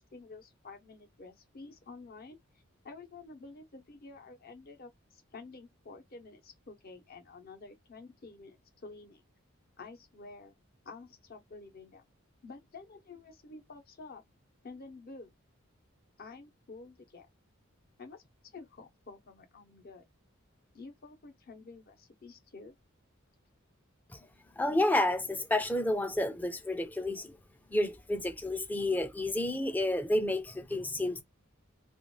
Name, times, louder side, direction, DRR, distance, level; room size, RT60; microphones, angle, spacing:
voice 1, 0.0-2.4 2.8-9.2 9.8-10.5 10.8-12.0 12.4-14.2 14.6-15.3 16.2-17.3 18.0-18.2 18.5-20.0 20.7-22.8, left 3 dB, 45° left, 0.7 m, -50 dB
voice 2, 24.6-27.4 27.7-31.2, left 1 dB, 10° left, 0.4 m, -30 dB
2.4 x 2.2 x 3.1 m
head